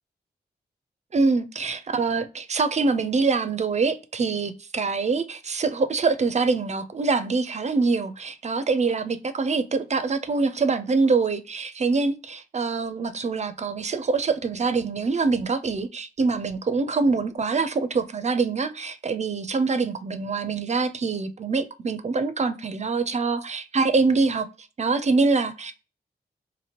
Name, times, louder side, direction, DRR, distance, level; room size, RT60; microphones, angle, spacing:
voice 1, 1.1-24.5 24.8-25.7, right 4 dB, 40° right, 0.4 m, -24 dB
2.8 x 2.6 x 2.8 m
supercardioid pair, 40°, 18 cm